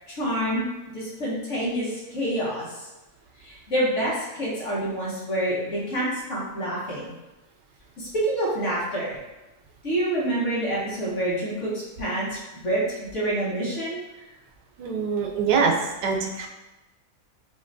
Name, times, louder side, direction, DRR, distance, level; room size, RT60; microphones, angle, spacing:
voice 1, 0.1-0.7 0.9-2.9 3.4-7.1 8.0-9.2 9.8-14.2, right 1 dB, 45° left, -6 dB, 1.4 m, -27 dB
voice 2, 14.8-15.7 16.0-16.5, right 5 dB, 90° right, 2 dB, 1.3 m, -23 dB
6.5 x 2.9 x 2.6 m, 1.0 s
omnidirectional pair, 1.8 m